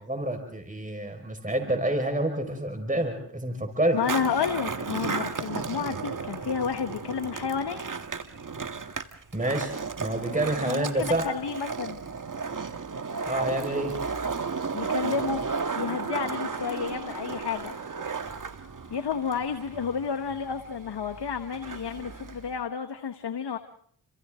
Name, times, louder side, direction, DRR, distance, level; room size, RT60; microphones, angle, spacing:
voice 1, 0.1-4.0 9.3-11.3 13.3-13.9, right 1 dB, 20° right, 5 dB, 5.4 m, -28 dB
voice 2, 3.9-7.8 10.7-12.0 14.7-15.4 15.7-18.2 18.9-23.6, left 6 dB, 65° left, 6 dB, 1.6 m, -31 dB
Skateboard, 3.9-22.6, right 5 dB, 45° right, 2.0 m, -34 dB
30.0 x 27.0 x 3.8 m, 0.62 s
cardioid pair, 45°, 43 cm